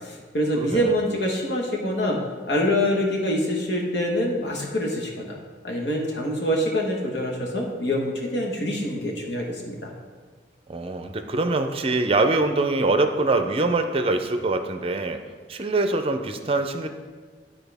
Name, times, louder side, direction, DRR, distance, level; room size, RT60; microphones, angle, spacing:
voice 1, 0.0-2.2 2.5-5.4 5.6-9.9, left 1 dB, 75° left, -1 dB, 1.4 m, -25 dB
voice 2, 0.6-0.9 10.7-15.2 15.5-16.9, right 2 dB, 35° right, 7 dB, 0.5 m, -24 dB
12.0 x 4.3 x 3.5 m, 1.5 s
head